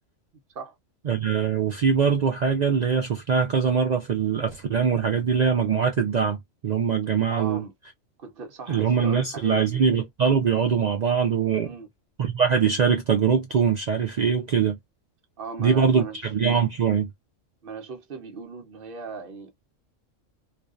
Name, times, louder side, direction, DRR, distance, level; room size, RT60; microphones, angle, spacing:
voice 1, 1.1-6.4 6.6-7.6 8.7-11.7 12.2-14.8 15.6-17.1, right 6 dB, 80° right, 0.3 m, -22 dB
voice 2, 7.3-7.7 8.2-9.8 11.6-11.9 15.4-16.2 17.6-19.5, right 4 dB, 50° right, 0.8 m, -38 dB
2.5 x 2.3 x 2.3 m
omnidirectional pair, 1.3 m